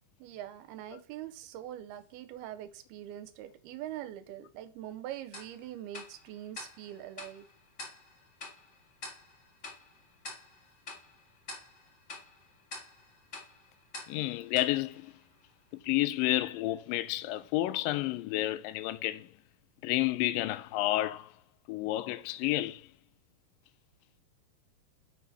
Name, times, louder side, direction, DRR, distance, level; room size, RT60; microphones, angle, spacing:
voice 1, 0.2-7.5, right 12 dB, 85° right, 2.6 m, -43 dB
Tick-tock, 5.3-15.8, left 2 dB, 55° left, 0.8 m, -48 dB
voice 2, 14.1-15.1 15.7-19.3 19.8-21.3 21.7-22.9, left 16 dB, 85° left, 2.0 m, -30 dB
6.8 x 4.8 x 5.5 m
omnidirectional pair, 4.5 m